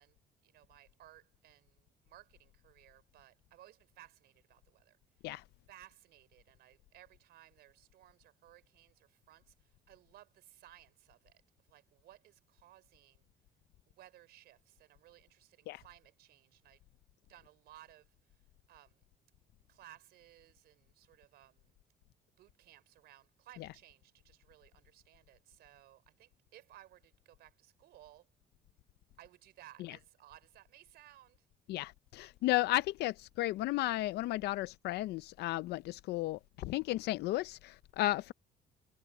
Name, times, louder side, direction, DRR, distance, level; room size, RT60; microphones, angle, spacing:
voice 1, 0.0-5.0 5.7-13.3 13.9-16.8 17.3-18.4 18.7-19.0 19.7-21.8 22.4-28.3 29.2-31.5, right 14 dB, 75° right, 3.9 m, -60 dB
voice 2, 31.7-38.3, left 17 dB, 75° left, 0.5 m, -34 dB
cardioid pair, 110°, 17 cm